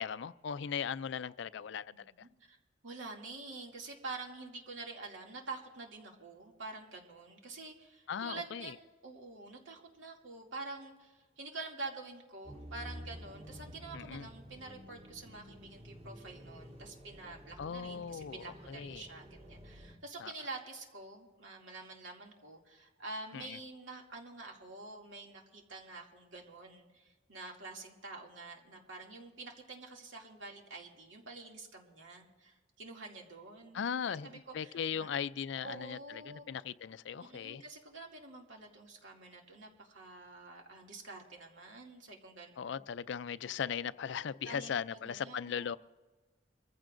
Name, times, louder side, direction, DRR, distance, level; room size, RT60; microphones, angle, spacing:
voice 1, 0.0-2.3 8.1-8.7 13.9-14.3 17.6-19.0 20.2-20.3 23.3-23.6 33.7-37.6 42.6-45.8, left 7 dB, 65° left, 0.4 m, -38 dB
voice 2, 1.9-2.3 2.8-35.1 35.6-36.4 37.2-42.7 44.4-45.7, right 3 dB, 90° right, 2.4 m, -47 dB
sound 1, 12.4-20.0, equal, 30° right, 1.7 m, -50 dB
24.5 x 15.0 x 2.6 m
head